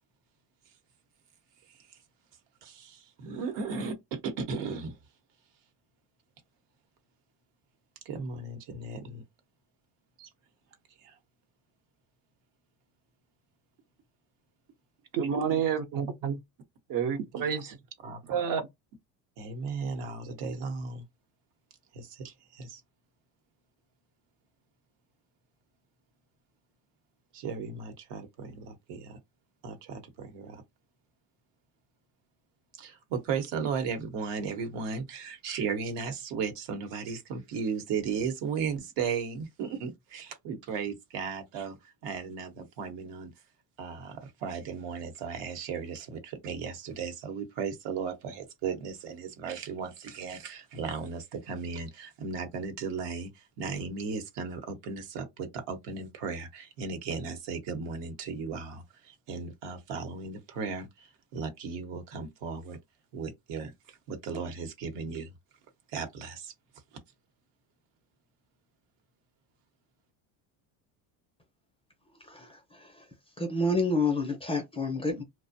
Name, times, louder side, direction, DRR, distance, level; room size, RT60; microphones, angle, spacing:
voice 1, 2.6-5.0 8.0-9.2 10.2-10.3 11.0-11.2 15.5-15.6 17.4-17.5 18.0-18.4 19.4-21.0 21.9-22.8 27.3-29.2 29.6-30.6 32.8-43.3 43.8-62.8 63.1-63.7 64.1-65.3 65.9-66.5, right 5 dB, 65° right, 1.0 m, -36 dB
voice 2, 15.1-16.4 16.9-17.7 18.3-18.7, right 7 dB, 45° right, 0.7 m, -29 dB
voice 3, 73.4-75.2, left 2 dB, 10° left, 0.5 m, -28 dB
2.5 x 2.2 x 2.6 m
cardioid pair, 120°, 46 cm